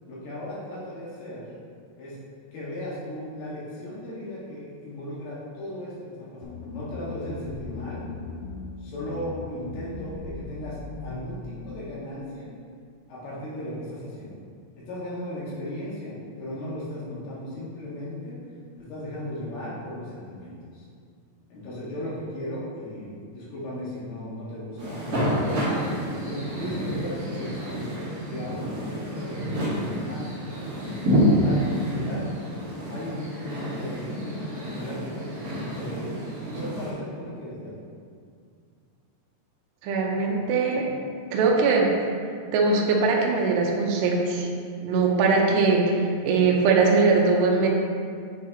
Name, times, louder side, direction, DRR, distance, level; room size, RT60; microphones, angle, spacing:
voice 1, 0.1-1.4 2.0-2.2 2.5-8.0 8.8-12.5 13.1-14.3 14.9-18.4 18.8-20.9 21.5-25.6 26.2-30.3 31.2-32.2 32.9-36.1 36.5-37.8, left 1 dB, 65° left, -8 dB, 3.3 m, -36 dB
sound 1, 6.4-11.8, left 3 dB, 85° left, 2.9 m, -38 dB
sound 2, 24.8-36.9, equal, 55° right, 1.6 m, -28 dB
voice 2, 39.8-40.9 41.3-41.9 42.5-44.5 44.8-47.7, right 4 dB, 80° right, -1 dB, 2.7 m, -21 dB
9.3 x 4.5 x 2.9 m, 2.2 s
omnidirectional pair, 5.3 m